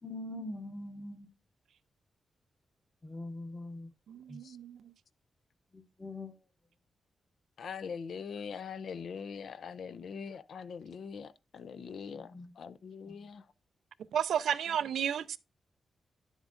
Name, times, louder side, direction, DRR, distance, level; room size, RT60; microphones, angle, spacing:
voice 1, 0.0-1.3 3.0-3.9 4.3-4.4 5.7-6.4 12.1-12.5 13.1-13.2, left 1 dB, 15° left, 1.0 m, -43 dB
voice 2, 4.1-4.9 14.1-15.4, right 9 dB, 90° right, 0.4 m, -32 dB
voice 3, 7.6-13.5, left 6 dB, 60° left, 0.4 m, -42 dB
10.5 x 8.0 x 2.5 m
wide cardioid pair, 170°, 0 cm